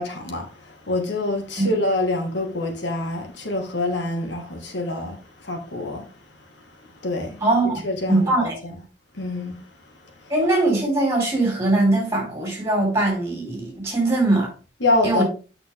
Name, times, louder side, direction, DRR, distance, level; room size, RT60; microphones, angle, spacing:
voice 1, 0.0-6.1 7.0-7.4 7.8-8.7 9.1-9.7 10.2-10.3 14.8-15.2, left 2 dB, 80° left, 2.0 m, -26 dB
voice 2, 7.4-7.8 8.1-8.6 10.3-14.5 15.0-15.2, right 2 dB, 15° right, 4.6 m, -21 dB
8.9 x 6.0 x 3.5 m
head